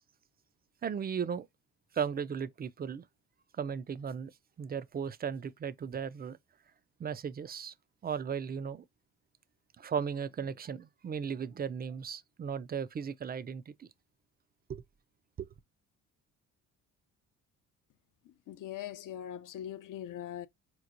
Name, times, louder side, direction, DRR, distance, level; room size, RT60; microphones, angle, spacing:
voice 1, 0.8-1.5 1.9-3.0 3.6-4.3 4.6-6.4 7.0-7.7 8.0-8.8 9.8-13.9 14.7-14.8 15.4-15.5, right 7 dB, 25° right, 0.3 m, -36 dB
voice 2, 18.2-20.5, left 11 dB, 55° left, 0.6 m, -41 dB
4.1 x 3.0 x 2.5 m
supercardioid pair, 75°, 38 cm